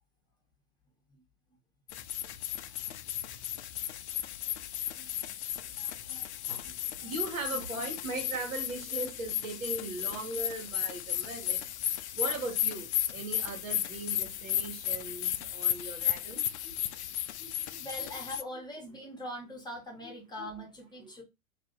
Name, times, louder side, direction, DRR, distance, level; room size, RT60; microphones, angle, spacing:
sound 1, 1.9-18.4, left 11 dB, 55° left, 0.5 m, -34 dB
voice 1, 4.7-5.3 5.8-7.1 17.8-21.2, equal, 10° left, 1.1 m, -43 dB
voice 2, 7.0-11.7 12.1-16.7 17.1-17.8 20.0-20.5 21.0-21.1, right 3 dB, 70° right, 1.5 m, -39 dB
2.8 x 2.6 x 3.9 m
hypercardioid pair, 105°, 42 cm